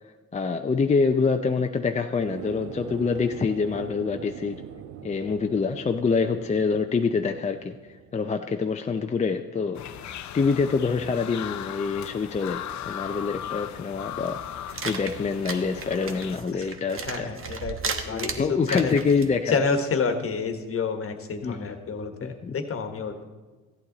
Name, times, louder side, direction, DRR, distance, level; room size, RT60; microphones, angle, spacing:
voice 1, 0.3-4.6 5.0-9.8 10.3-14.4 14.8-17.3 18.1-19.6 21.4-21.8 22.2-22.6, left 5 dB, 25° left, 5 dB, 0.5 m, -26 dB
sound 1, 2.3-9.1, right 10 dB, 70° right, 0.5 m, -42 dB
sound 2, 9.7-16.4, left 10 dB, 70° left, 0.6 m, -37 dB
sound 3, 14.7-19.4, right 5 dB, 45° right, 1.1 m, -34 dB
voice 2, 17.0-18.9 19.5-23.2, left 5 dB, 45° left, 7 dB, 1.3 m, -29 dB
14.5 x 8.7 x 3.9 m, 1.3 s
cardioid pair, 90°, 30 cm